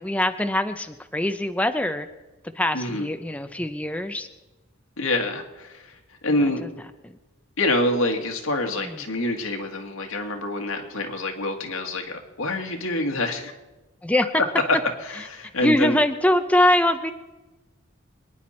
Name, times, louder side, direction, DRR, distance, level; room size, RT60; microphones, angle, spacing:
voice 1, 0.0-2.1 2.5-4.3 6.3-6.7 7.0-7.2 8.8-9.1 14.0-14.3 15.6-17.1, left 1 dB, 5° left, 8 dB, 0.5 m, -23 dB
voice 2, 2.7-3.1 5.0-6.0 6.2-6.6 7.6-13.5 15.3-16.0, left 1 dB, 85° left, 3 dB, 2.0 m, -26 dB
24.5 x 10.0 x 4.3 m, 1.1 s
head